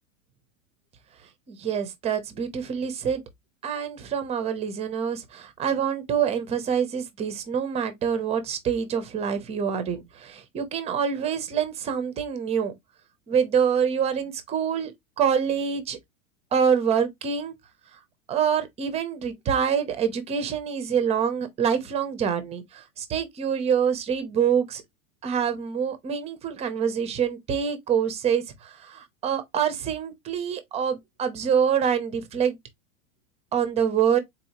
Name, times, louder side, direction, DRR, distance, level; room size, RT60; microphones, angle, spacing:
voice 1, 1.5-3.2 3.6-12.7 13.3-14.9 15.2-16.0 16.5-17.5 18.3-24.8 25.2-32.6 33.5-34.2, right 7 dB, 15° right, 0.4 m, -26 dB
3.9 x 2.6 x 2.8 m
hypercardioid pair, 125°, 41 cm